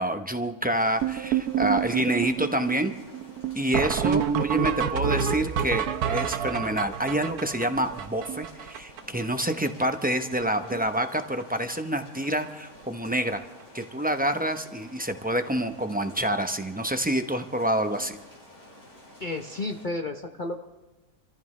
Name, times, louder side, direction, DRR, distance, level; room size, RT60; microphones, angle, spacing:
voice 1, 0.0-2.9 3.5-13.4 13.7-18.2, right 1 dB, 15° right, 6 dB, 0.3 m, -27 dB
sound 1, 0.7-19.9, left 1 dB, 70° left, 5.6 m, -51 dB
sound 2, 1.0-9.2 9.5-9.6 9.8-10.1 10.3-10.9 11.2-11.4 12.2-12.3 12.8-12.9 13.1-13.3 15.6-15.7 18.0-18.1, right 8 dB, 80° right, 1.3 m, -28 dB
voice 2, 19.2-20.6, left 2 dB, 40° left, 3 dB, 0.8 m, -32 dB
27.0 x 14.5 x 3.2 m, 1.1 s
omnidirectional pair, 1.6 m